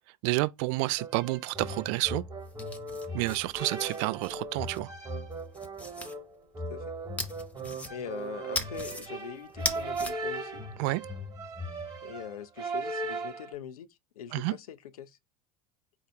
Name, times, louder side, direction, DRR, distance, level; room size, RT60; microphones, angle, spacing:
voice 1, 0.2-2.2 3.1-4.9 10.8-11.0 14.3-14.5, right 20 dB, 50° right, 0.4 m, -29 dB
sound 1, 1.0-13.5, right 2 dB, 20° right, 1.2 m, -38 dB
sound 2, 2.4-4.8 5.3-6.2 7.2-8.2 8.5-9.1 9.5-10.1, left 1 dB, 5° left, 0.8 m, -37 dB
voice 2, 6.7-7.0 7.9-10.6 12.0-15.2, left 9 dB, 75° left, 0.4 m, -42 dB
4.4 x 2.0 x 3.3 m
figure-of-eight pair, 75°, 19 cm